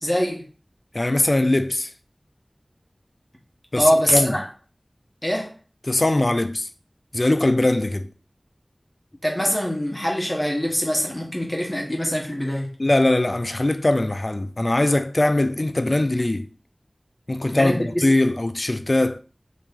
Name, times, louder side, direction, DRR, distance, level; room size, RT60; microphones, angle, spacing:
voice 1, 0.0-0.5 3.8-4.4 5.2-5.5 9.2-12.7 17.5-18.0, equal, 25° left, 1.1 m, -23 dB
voice 2, 0.9-1.9 3.7-4.4 5.9-6.7 7.1-8.1 12.8-16.5 17.3-19.2, left 1 dB, 50° left, 0.3 m, -21 dB
3.1 x 2.7 x 3.6 m
wide cardioid pair, 40°, 0 cm